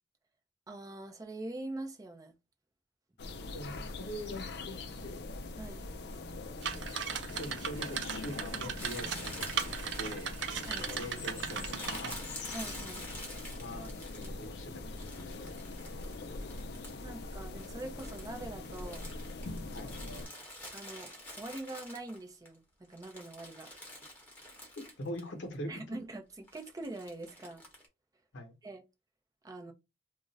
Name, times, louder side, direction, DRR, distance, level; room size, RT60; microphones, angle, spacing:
voice 1, 0.7-2.3 5.6-5.9 10.7-10.9 12.5-13.0 17.0-19.1 20.7-23.7 25.7-27.6 28.6-28.8 29.4-29.7, right 2 dB, 20° right, 0.5 m, -43 dB
sound 1, 3.2-20.3, left 2 dB, 60° left, 0.4 m, -43 dB
voice 2, 3.5-5.3 7.2-9.7 10.0-10.3 10.8-12.2 13.6-15.5 19.7-19.9 24.8-25.7 28.3-28.5, left 1 dB, 90° left, 0.8 m, -43 dB
sound 2, 6.6-12.1, right 7 dB, 85° right, 0.5 m, -38 dB
Crumpling crinkling, 8.8-14.5 15.0-17.1 17.4-22.5 22.8-25.3 25.5-25.6 26.5-27.9, left 1 dB, 10° left, 0.9 m, -48 dB
2.4 x 2.0 x 3.8 m
head